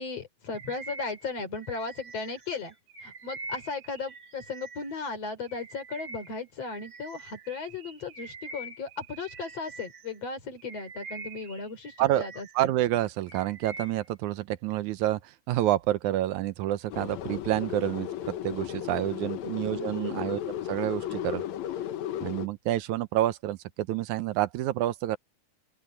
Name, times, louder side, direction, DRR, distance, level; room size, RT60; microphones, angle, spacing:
voice 1, 0.0-2.7 3.0-12.7 19.6-20.3, left 4 dB, 55° left, 4.9 m, -36 dB
Bird vocalization bird call bird song, 0.5-5.0 5.4-10.2 10.6-12.7 13.0-14.1, right 3 dB, 45° right, 3.3 m, -45 dB
voice 2, 12.6-21.4 22.2-25.2, right 14 dB, 80° right, 2.2 m, -28 dB
sound 1, 16.9-22.5, left 11 dB, 70° left, 2.3 m, -35 dB
open air
omnidirectional pair, 3.4 m